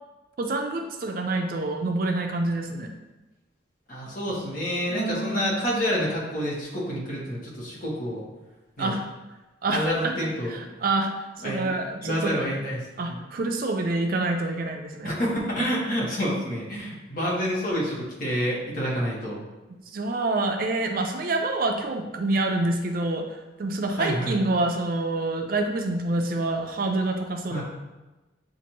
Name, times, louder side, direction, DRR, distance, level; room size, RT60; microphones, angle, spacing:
voice 1, 0.4-2.9 4.9-5.5 8.8-9.0 9.6-10.1 10.5-12.4 13.0-15.1 19.9-27.6, right 2 dB, 50° right, 4 dB, 0.4 m, -27 dB
voice 2, 3.9-8.2 8.8-8.9 9.7-10.5 11.4-11.7 12.0-13.2 15.0-19.4 23.9-24.4 27.5-27.6, equal, 50° left, -5 dB, 1.4 m, -28 dB
7.1 x 2.5 x 3.0 m, 1.1 s
head